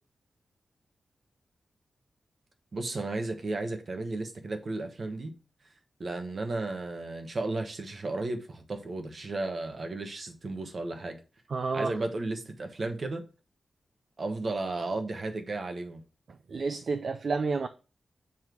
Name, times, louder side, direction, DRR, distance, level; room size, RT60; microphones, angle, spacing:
voice 1, 2.7-5.3 6.0-11.2 11.7-13.2 14.2-16.0, right 2 dB, 45° right, 1.2 m, -34 dB
voice 2, 11.5-11.9 16.5-17.7, right 4 dB, 60° right, 0.4 m, -29 dB
7.3 x 3.3 x 5.9 m
wide cardioid pair, 145°, 0 cm